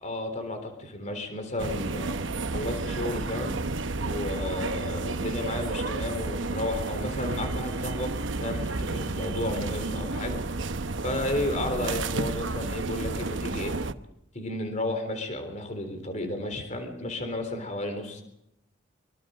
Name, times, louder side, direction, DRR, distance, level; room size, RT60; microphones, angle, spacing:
voice 1, 0.0-2.2 2.5-3.6 4.0-8.1 8.4-10.4 11.0-13.8 14.3-18.2, left 1 dB, 35° left, 6 dB, 3.7 m, -32 dB
sound 1, 1.6-13.9, right 3 dB, 70° right, 1.0 m, -31 dB
25.0 x 24.0 x 5.1 m, 0.81 s
head